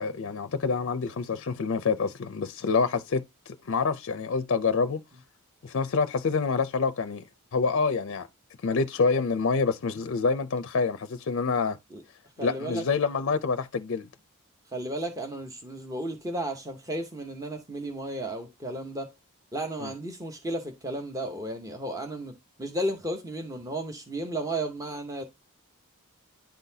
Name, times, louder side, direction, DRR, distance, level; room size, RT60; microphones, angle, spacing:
voice 1, 0.0-5.0 5.6-7.2 7.5-8.3 8.6-11.8 12.4-14.1 19.8-19.9, left 4 dB, 55° left, 0.5 m, -27 dB
voice 2, 12.4-12.8 14.7-19.1 19.5-25.2, right 1 dB, 15° right, 0.7 m, -33 dB
10.5 x 3.9 x 2.7 m
head